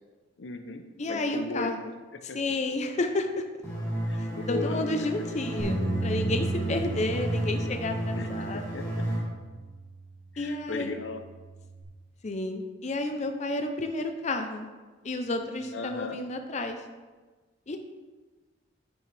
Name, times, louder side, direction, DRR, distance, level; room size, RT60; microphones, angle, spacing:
voice 1, 0.4-2.4 4.1-4.8 5.2-5.3 8.2-9.0 10.3-11.2 15.7-16.2, left 3 dB, 75° left, 7 dB, 0.7 m, -37 dB
voice 2, 1.0-1.8 2.3-3.4 4.5-8.8 10.4-11.0 12.2-14.7 15.0-16.8 17.7-17.8, left 2 dB, 40° left, 6 dB, 0.6 m, -31 dB
sound 1, 3.6-9.2, right 1 dB, 15° left, 2.2 m, -32 dB
Bass guitar, 5.6-10.0 10.7-11.8, right 2 dB, 55° left, 2.4 m, -35 dB
10.0 x 6.2 x 3.3 m, 1.3 s
head